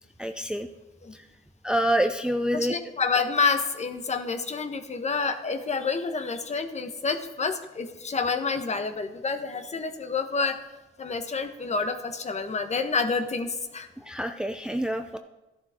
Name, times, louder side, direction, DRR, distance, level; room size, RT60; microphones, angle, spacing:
voice 1, 0.2-0.7 1.1-1.3 1.6-2.8 14.0-15.2, right 1 dB, 5° right, 6 dB, 0.6 m, -27 dB
voice 2, 2.5-10.6 11.0-13.9, left 4 dB, 35° left, 7 dB, 1.2 m, -28 dB
13.5 x 11.5 x 3.7 m, 1.1 s
cardioid pair, 90°, 20 cm